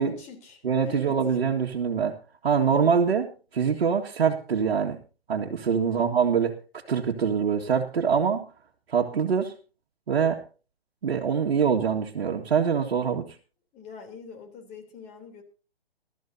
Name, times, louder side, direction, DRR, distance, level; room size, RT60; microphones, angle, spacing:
voice 1, 0.0-1.2 1.5-1.6 5.9-6.1 13.7-15.4, left 6 dB, 20° left, 4 dB, 3.5 m, -43 dB
voice 2, 0.6-2.2 2.4-5.0 5.3-6.5 6.9-8.4 8.9-9.5 10.1-10.4 11.0-13.3, right 6 dB, 65° right, -1 dB, 1.9 m, -24 dB
21.5 x 13.5 x 2.8 m, 0.35 s
hypercardioid pair, 140°, 31 cm